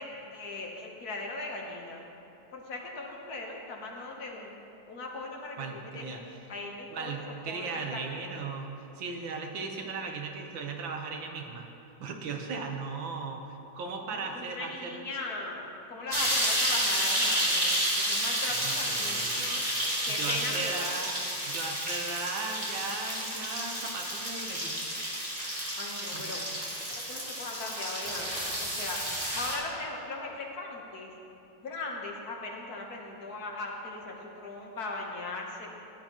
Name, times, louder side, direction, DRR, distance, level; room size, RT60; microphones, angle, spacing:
voice 1, 0.0-2.1 2.5-4.5 4.9-6.1 6.5-8.0 14.1-19.3 20.1-20.9 25.8-26.4 27.1-29.0 29.3-31.1 31.6-35.7, left 3 dB, 55° left, 0 dB, 1.5 m, -39 dB
voice 2, 5.6-6.2 6.9-8.7 9.0-11.6 12.0-13.4 13.8-15.0 18.6-24.8 26.1-26.4, right 4 dB, 80° right, 3 dB, 1.7 m, -37 dB
sound 1, 16.1-29.5, equal, 20° right, 2.2 m, -31 dB
16.0 x 10.0 x 3.0 m, 3.0 s
omnidirectional pair, 2.1 m